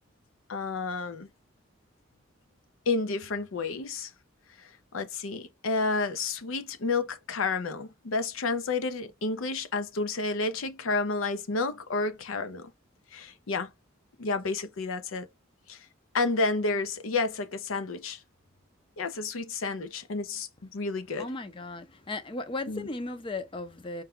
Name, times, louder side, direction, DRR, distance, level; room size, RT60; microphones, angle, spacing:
voice 1, 0.5-1.3 2.9-4.1 4.9-12.7 13.1-13.7 14.2-15.3 15.7-15.8 16.1-18.2 19.0-21.3 22.7-22.9, left 3 dB, 80° left, 0.6 m, -30 dB
voice 2, 21.2-24.0, left 2 dB, 25° left, 0.5 m, -36 dB
4.5 x 2.3 x 3.6 m
head